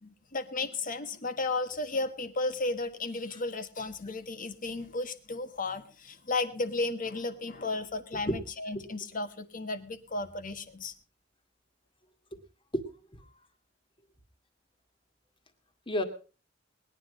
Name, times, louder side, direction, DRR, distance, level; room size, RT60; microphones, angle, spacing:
voice 1, 0.0-10.9, left 3 dB, 45° left, 10 dB, 1.4 m, -34 dB
voice 2, 12.7-13.3 15.9-16.0, equal, 25° left, 6 dB, 2.0 m, -33 dB
20.0 x 10.0 x 5.2 m, 0.37 s
head